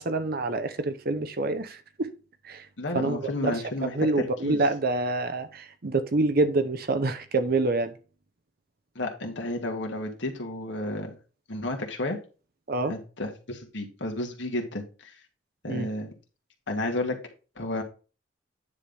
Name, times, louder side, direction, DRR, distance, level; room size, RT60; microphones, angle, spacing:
voice 1, 0.0-2.1 2.4-2.7 2.9-7.9 12.7-13.0 15.7-15.9, right 2 dB, 50° right, 0.8 m, -27 dB
voice 2, 2.8-4.6 9.0-11.2 11.5-12.2 12.9-15.2 15.6-16.1 16.7-17.2 17.6-17.8, left 1 dB, 65° left, 1.9 m, -32 dB
9.8 x 3.4 x 5.4 m
head